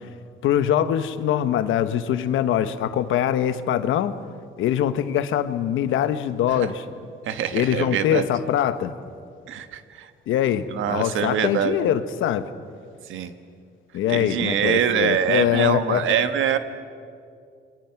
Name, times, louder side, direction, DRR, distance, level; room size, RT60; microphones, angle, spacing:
voice 1, 0.4-4.1 4.6-6.9 7.5-8.9 10.3-12.5 13.9-16.1, left 10 dB, 85° left, 11 dB, 1.1 m, -23 dB
voice 2, 7.3-8.2 9.5-10.1 10.7-11.8 13.1-13.3 14.1-16.6, right 9 dB, 80° right, 10 dB, 1.4 m, -24 dB
29.0 x 23.0 x 5.9 m, 2.3 s
cardioid pair, 90°, 20 cm